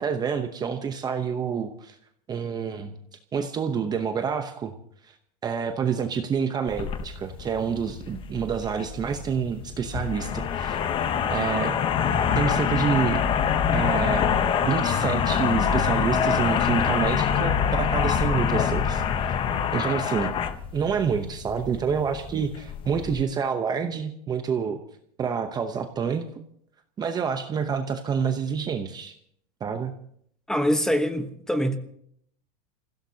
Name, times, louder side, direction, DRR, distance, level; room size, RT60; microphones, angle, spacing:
voice 1, 0.0-2.0 2.3-2.9 3.3-4.7 5.0-5.1 5.4-10.8 11.3-11.8 12.4-13.2 13.7-14.3 14.6-19.4 19.7-20.3 20.7-24.8 25.2-26.3 27.0-29.1 29.6-29.9, right 6 dB, 20° right, 0.8 m, -28 dB
sound 1, 6.7-23.2, left 7 dB, 25° left, 0.9 m, -25 dB
voice 2, 30.5-31.8, equal, 5° left, 1.1 m, -24 dB
26.5 x 16.0 x 2.8 m
supercardioid pair, 150°, 20 cm